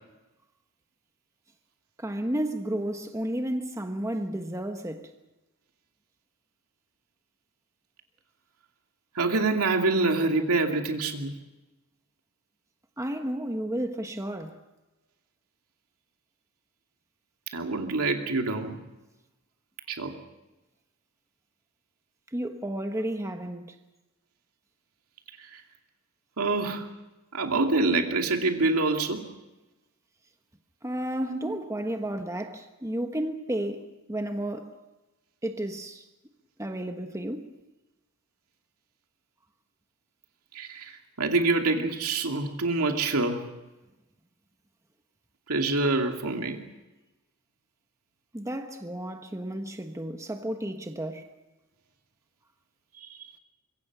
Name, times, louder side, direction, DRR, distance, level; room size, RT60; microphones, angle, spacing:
voice 1, 2.0-5.1 13.0-14.6 22.3-23.8 30.8-34.8 35.4-36.0 36.6-37.6 48.3-51.3, right 1 dB, 15° right, 1.2 m, -32 dB
voice 2, 9.1-11.3 17.5-18.8 19.9-20.1 25.4-25.6 26.4-26.9 27.3-29.2 31.3-31.5 40.5-43.5 45.5-46.6 53.0-53.2, right 3 dB, 75° right, 2.6 m, -26 dB
24.5 x 23.0 x 6.1 m
head